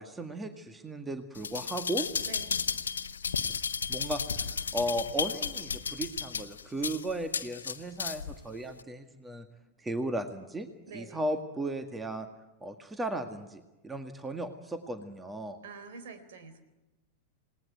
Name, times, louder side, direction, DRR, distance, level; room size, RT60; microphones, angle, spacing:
voice 1, 0.0-2.1 3.9-9.5 9.8-10.7 10.9-12.3 12.6-15.6, right 1 dB, 10° right, 7 dB, 1.9 m, -35 dB
sound 1, 1.4-8.4 8.8-8.9, left 6 dB, 70° left, 1.2 m, -33 dB
voice 2, 2.3-2.6 10.9-11.2 15.6-16.6, right 4 dB, 55° right, 10 dB, 3.8 m, -46 dB
28.5 x 19.5 x 9.3 m, 1.0 s
figure-of-eight pair, 90°, 0 cm